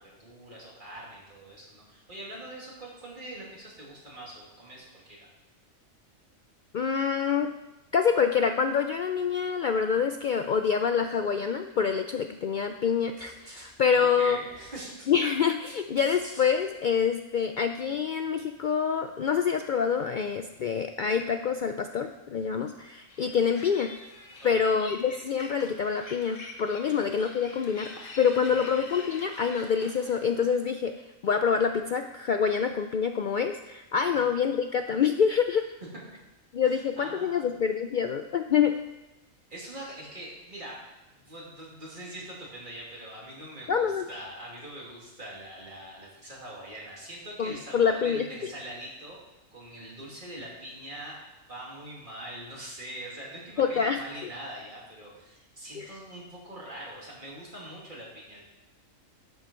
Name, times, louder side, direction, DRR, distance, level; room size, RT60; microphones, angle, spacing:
voice 1, 0.0-5.3 13.9-14.8 24.4-24.7 26.8-27.0 28.4-28.8 34.1-34.3 36.6-37.5 39.5-40.8 41.1-49.2 49.5-51.2 51.5-58.4, right 1 dB, 35° right, -5 dB, 2.9 m, -43 dB
voice 2, 6.7-7.5 7.9-14.4 15.1-23.9 24.4-27.9 28.2-35.7 36.5-38.8 43.7-44.0 47.4-48.3 53.6-54.0 55.8-55.9, left 6 dB, 80° left, 7 dB, 0.4 m, -26 dB
sound 1, 13.2-13.7 14.5-15.1 15.7-16.7, right 1 dB, 90° right, 3.2 m, -47 dB
sound 2, 23.1-30.6, left 2 dB, 40° left, 1.4 m, -45 dB
11.5 x 8.2 x 4.4 m, 1.0 s
omnidirectional pair, 1.4 m